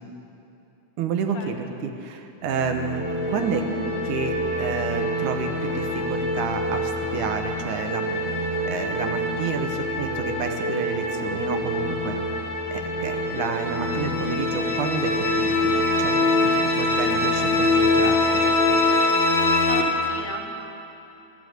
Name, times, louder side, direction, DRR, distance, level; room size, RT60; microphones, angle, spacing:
voice 1, 1.0-3.7 4.1-8.3 8.7-12.2 12.7-18.4, right 5 dB, 75° right, 5 dB, 2.4 m, -30 dB
sound 1, 2.4-19.8, left 2 dB, 25° left, 1.5 m, -24 dB
voice 2, 19.6-20.6, left 4 dB, 65° left, 0 dB, 2.5 m, -35 dB
14.0 x 12.5 x 7.9 m, 3.0 s
omnidirectional pair, 3.6 m